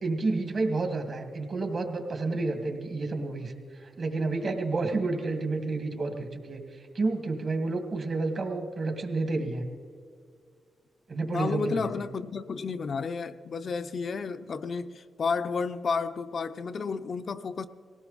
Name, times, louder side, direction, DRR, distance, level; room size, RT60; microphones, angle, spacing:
voice 1, 0.0-9.6 11.1-11.8, right 3 dB, 50° right, 2.0 m, -30 dB
voice 2, 11.3-17.7, left 5 dB, 55° left, 0.6 m, -31 dB
19.5 x 17.0 x 4.1 m
cardioid pair, 95°, 0 cm